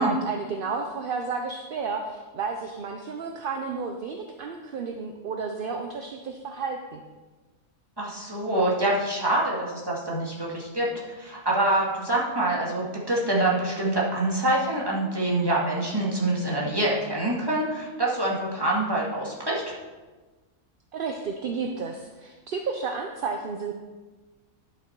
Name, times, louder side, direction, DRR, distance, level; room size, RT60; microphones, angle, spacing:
voice 1, 0.0-7.0 20.9-23.8, right 5 dB, 50° right, 4 dB, 0.7 m, -32 dB
voice 2, 8.0-19.6, right 1 dB, 15° right, -4 dB, 2.1 m, -25 dB
11.0 x 6.9 x 4.6 m, 1.3 s
omnidirectional pair, 1.5 m